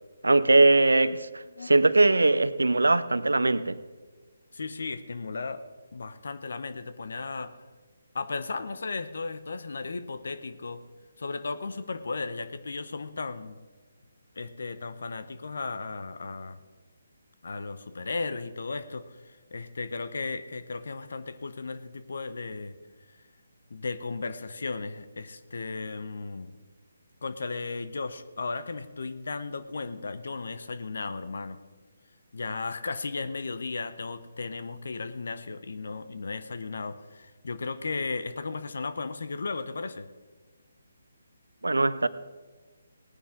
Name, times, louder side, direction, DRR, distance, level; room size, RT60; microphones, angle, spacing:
voice 1, 0.2-3.8 41.6-42.1, right 2 dB, 80° right, 0.6 m, -21 dB
voice 2, 4.5-5.6 5.9-7.6 8.1-10.8 11.2-13.6 14.4-16.6 17.4-22.7 23.7-26.5 27.2-31.6 32.3-40.1, left 4 dB, 60° left, 0.9 m, -35 dB
19.0 x 9.9 x 3.8 m
figure-of-eight pair, 145°, 0 cm